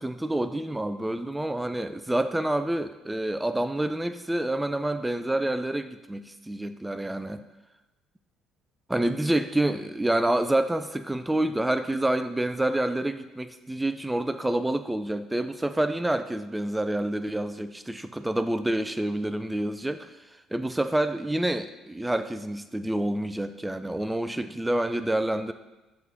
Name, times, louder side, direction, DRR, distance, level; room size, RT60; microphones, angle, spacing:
voice 1, 0.0-7.5 8.9-20.1 20.5-25.5, right 1 dB, 10° right, 10 dB, 0.5 m, -28 dB
5.9 x 3.8 x 5.8 m, 1.1 s
hypercardioid pair, 60°, 0 cm